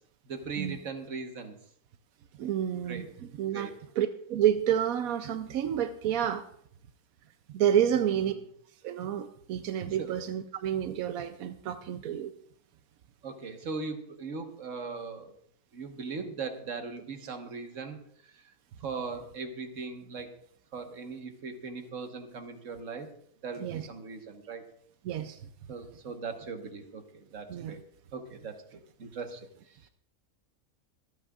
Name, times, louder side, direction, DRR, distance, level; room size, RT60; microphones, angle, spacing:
voice 1, 0.2-1.5 2.9-3.1 3.5-3.7 7.9-8.2 10.0-10.2 13.2-15.3 15.7-18.0 18.8-20.3 20.7-23.1 23.4-24.6 25.7-27.8 28.1-29.9, right 4 dB, 65° right, 5 dB, 1.6 m, -39 dB
voice 2, 2.4-3.1 3.4-6.4 7.5-8.3 8.8-12.3 23.6-23.9 25.0-25.4 27.5-27.7, right 10 dB, 90° right, 9 dB, 1.1 m, -29 dB
25.0 x 9.0 x 2.4 m, 0.66 s
omnidirectional pair, 1.4 m